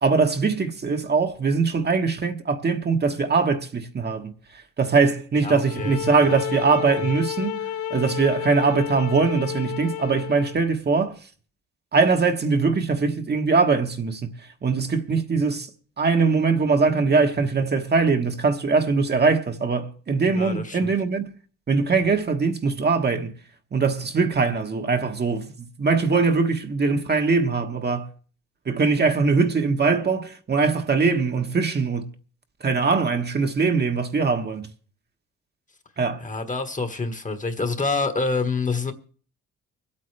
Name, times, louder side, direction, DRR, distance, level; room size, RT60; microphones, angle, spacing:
voice 1, 0.0-4.3 4.8-11.1 11.9-14.2 14.6-15.7 16.0-21.3 21.7-23.3 23.7-25.5 25.8-28.1 28.7-32.1 32.6-34.7 36.0-36.2, right 4 dB, 35° right, 1.2 m, -22 dB
voice 2, 5.4-6.0 6.2-6.7 20.3-20.9 36.2-38.9, left 3 dB, 25° left, 1.4 m, -27 dB
sound 1, 5.6-10.6, left 10 dB, 75° left, 0.8 m, -31 dB
25.0 x 8.5 x 3.3 m
cardioid pair, 90°, 30 cm